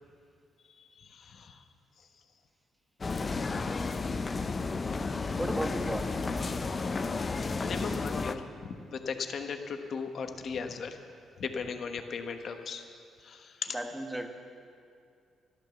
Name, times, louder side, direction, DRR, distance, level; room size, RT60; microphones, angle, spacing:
voice 1, 0.8-1.6 2.0-2.1 7.6-11.0 11.4-12.9 13.2-13.8, left 5 dB, 55° left, 6 dB, 1.2 m, -37 dB
sound 1, 3.0-8.4, left 4 dB, 30° left, 0.7 m, -32 dB
voice 2, 5.4-6.4 13.7-14.3, right 1 dB, 5° right, 5 dB, 1.3 m, -35 dB
13.0 x 12.0 x 7.1 m, 2.4 s
cardioid pair, 90°, 0 cm